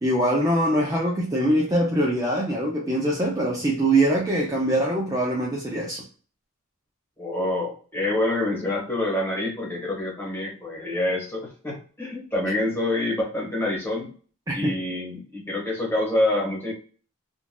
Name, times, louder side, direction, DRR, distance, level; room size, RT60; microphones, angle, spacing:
voice 1, 0.0-6.0 14.5-14.7, right 1 dB, 15° right, -3 dB, 0.5 m, -23 dB
voice 2, 7.2-14.1 14.5-16.7, left 1 dB, 10° left, -3 dB, 1.3 m, -26 dB
3.7 x 2.5 x 2.2 m, 0.40 s
head